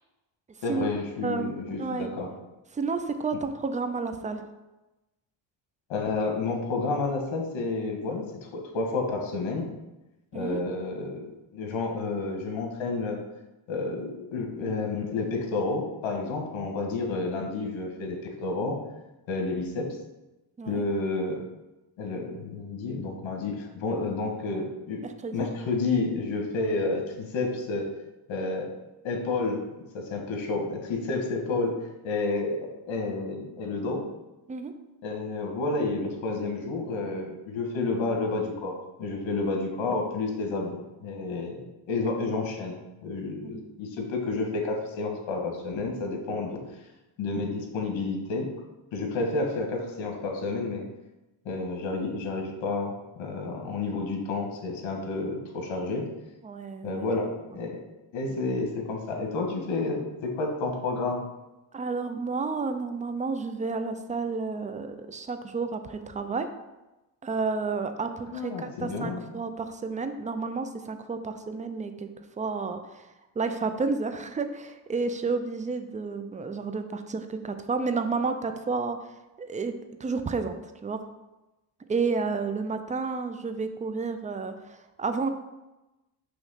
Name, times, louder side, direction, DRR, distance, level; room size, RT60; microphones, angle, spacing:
voice 1, 0.6-2.3 5.9-8.2 8.5-9.7 10.3-13.2 13.7-18.8 19.3-20.0 20.7-21.4 22.0-25.0 25.3-27.9 28.3-28.7 29.0-29.6 29.9-31.7 32.0-34.0 35.0-46.6 47.2-48.5 48.9-50.8 51.4-56.0 56.8-57.8 58.1-61.2 68.3-69.2, left 3 dB, 75° left, 2 dB, 1.6 m, -30 dB
voice 2, 1.2-2.1 2.7-4.5 10.3-10.6 20.6-20.8 25.0-25.5 34.5-34.7 43.4-43.7 56.4-57.1 61.7-66.5 67.2-72.1 72.4-73.1 73.4-79.0 79.4-79.7 80.0-80.5 80.8-81.0 81.9-85.3, right 4 dB, 15° right, 8 dB, 0.5 m, -31 dB
6.1 x 3.1 x 5.7 m, 1.0 s
cardioid pair, 105°, 47 cm